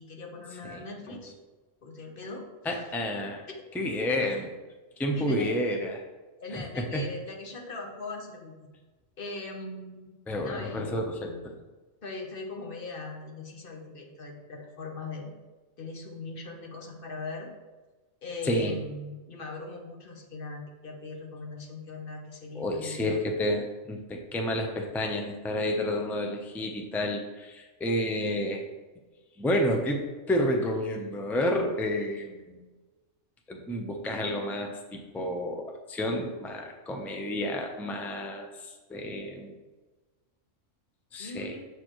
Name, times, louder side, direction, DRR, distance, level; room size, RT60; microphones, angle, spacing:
voice 1, 0.0-1.3 1.8-2.5 3.5-3.6 5.1-5.6 6.4-8.6 9.2-10.1 10.4-11.5 12.0-15.3 15.8-17.5 18.2-23.2 41.2-41.7, left 3 dB, 45° left, 1 dB, 1.1 m, -40 dB
voice 2, 2.6-3.5 3.7-4.5 5.0-6.0 6.5-7.1 10.3-11.3 18.4-18.7 22.5-28.6 29.4-32.6 33.5-39.5 41.1-41.6, left 1 dB, 5° left, 2 dB, 0.3 m, -30 dB
6.7 x 6.6 x 3.1 m, 1.2 s
omnidirectional pair, 1.4 m